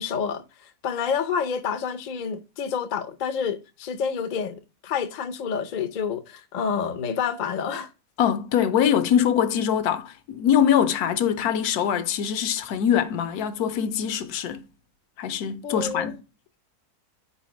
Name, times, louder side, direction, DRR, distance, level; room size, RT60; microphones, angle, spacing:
voice 1, 0.0-7.9 15.6-16.2, left 6 dB, 60° left, 0.4 m, -29 dB
voice 2, 8.2-14.6 15.2-16.2, left 9 dB, 80° left, 1.1 m, -23 dB
4.8 x 4.0 x 5.0 m
omnidirectional pair, 1.6 m